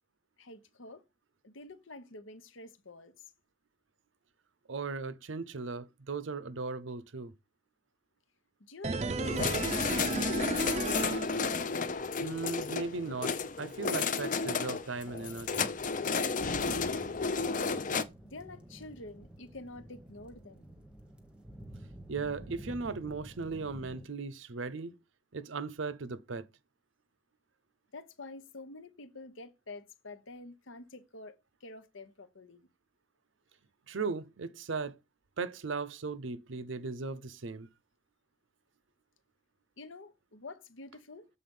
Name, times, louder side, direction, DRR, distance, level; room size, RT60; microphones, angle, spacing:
voice 1, 0.4-1.0 1.4-3.3 8.6-10.9 16.6-17.2 18.2-20.6 27.9-32.7 39.8-41.3, left 2 dB, 80° left, 1.1 m, -48 dB
voice 2, 4.7-7.3 12.2-15.7 22.1-24.9 25.3-26.5 33.9-35.0 35.4-37.7, right 4 dB, 75° right, 0.7 m, -37 dB
sound 1, 8.8-12.0 12.2-12.3, right 3 dB, 35° right, 0.4 m, -34 dB
sound 2, 9.2-18.0, left 5 dB, 40° left, 0.6 m, -32 dB
sound 3, 15.0-24.1, right 1 dB, 5° right, 1.0 m, -51 dB
7.6 x 4.0 x 5.4 m
head